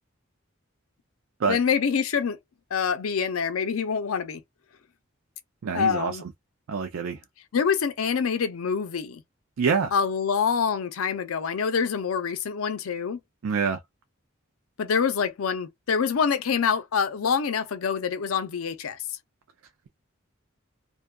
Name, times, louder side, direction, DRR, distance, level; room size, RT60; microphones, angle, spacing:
voice 1, 1.5-2.4 2.7-4.4 5.7-6.2 7.5-9.2 9.9-13.2 14.8-19.0, left 6 dB, 90° left, 0.5 m, -26 dB
voice 2, 5.6-6.2 6.7-7.2 9.6-9.9 13.4-13.8, right 5 dB, 80° right, 0.4 m, -25 dB
2.6 x 2.3 x 2.2 m
head